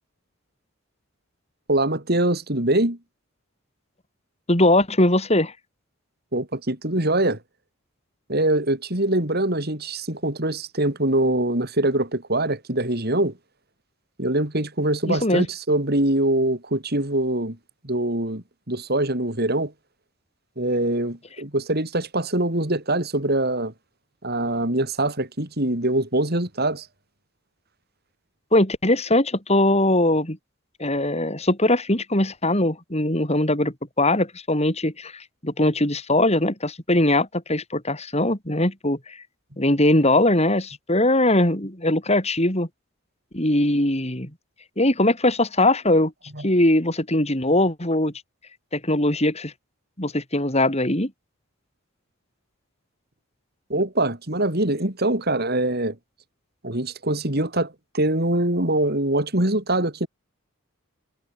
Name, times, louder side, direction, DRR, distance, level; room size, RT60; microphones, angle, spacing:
voice 1, 1.7-3.0 6.3-7.4 8.3-13.3 14.2-17.6 17.8-19.7 20.6-23.7 24.2-26.9 46.3-46.5 53.7-56.0 56.6-60.1, right 1 dB, 45° right, 4.3 m, -23 dB
voice 2, 4.5-5.5 15.0-15.5 28.5-30.4 30.8-39.2 39.6-42.7 43.3-44.3 44.8-46.1 46.4-48.1 48.7-49.5 50.0-51.1, left 1 dB, 30° left, 4.9 m, -21 dB
head